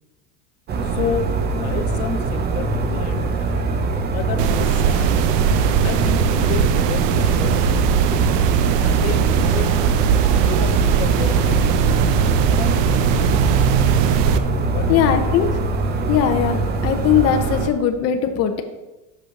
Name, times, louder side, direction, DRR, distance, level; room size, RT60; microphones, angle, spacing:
sound 1, 0.7-17.7, right 3 dB, 20° right, 0.5 m, -22 dB
voice 1, 0.8-3.6 4.1-5.3 5.8-8.1 8.8-10.0 10.4-12.1 12.6-13.5 14.7-15.3, left 7 dB, 75° left, 8 dB, 1.0 m, -31 dB
sound 2, 4.4-14.4, right 8 dB, 90° right, 0.7 m, -19 dB
voice 2, 14.9-15.5 16.1-18.6, left 9 dB, 35° left, 6 dB, 0.6 m, -19 dB
6.3 x 5.5 x 5.6 m, 1.0 s
cardioid pair, 150°, 47 cm